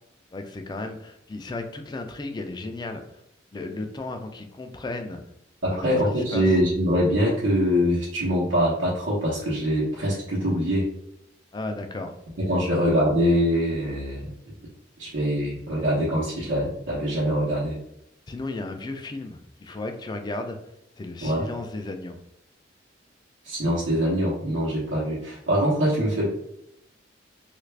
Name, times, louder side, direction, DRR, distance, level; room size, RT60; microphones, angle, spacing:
voice 1, 0.3-3.0 3.5-5.2 5.7-6.6 11.5-12.1 12.6-12.8 18.3-20.6 21.0-22.2, left 2 dB, 20° left, 6 dB, 0.3 m, -34 dB
voice 2, 5.6-10.9 12.4-14.3 15.0-17.8 21.2-21.5 23.4-26.3, equal, 80° right, -7 dB, 0.9 m, -23 dB
3.2 x 2.4 x 3.2 m, 0.79 s
head